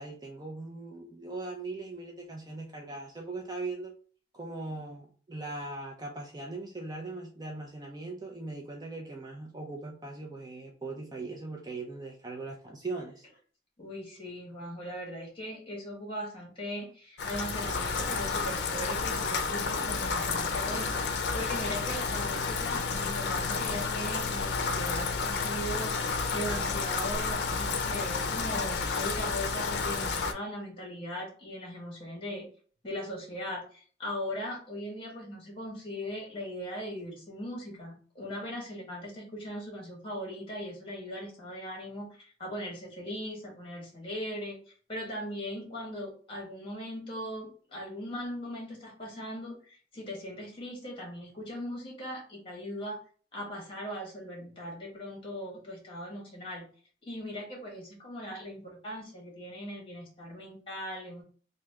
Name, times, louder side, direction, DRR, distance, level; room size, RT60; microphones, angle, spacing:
voice 1, 0.0-3.9 4.3-13.3, right 3 dB, 20° right, 0 dB, 0.5 m, -40 dB
voice 2, 13.8-21.1 21.3-32.5 32.8-44.6 44.9-53.0 53.3-56.7 57.0-61.2, equal, 30° left, -1 dB, 1.6 m, -39 dB
Rain, 17.2-30.3, left 4 dB, 70° left, 0.5 m, -31 dB
3.2 x 2.7 x 3.5 m, 0.43 s
head